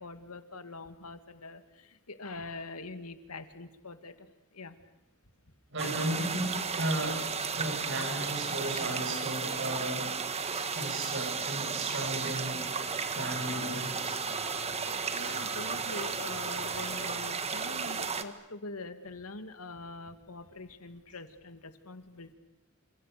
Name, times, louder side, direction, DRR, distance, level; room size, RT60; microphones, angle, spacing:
voice 1, 0.0-4.8 15.1-22.3, left 3 dB, 90° left, 2.2 m, -44 dB
voice 2, 5.7-12.7 13.0-14.2, right 1 dB, 55° right, 7.2 m, -35 dB
sound 1, 5.8-18.2, right 5 dB, 30° right, 1.6 m, -34 dB
sound 2, 12.4-17.4, left 3 dB, 70° left, 4.6 m, -48 dB
29.5 x 27.5 x 6.8 m
head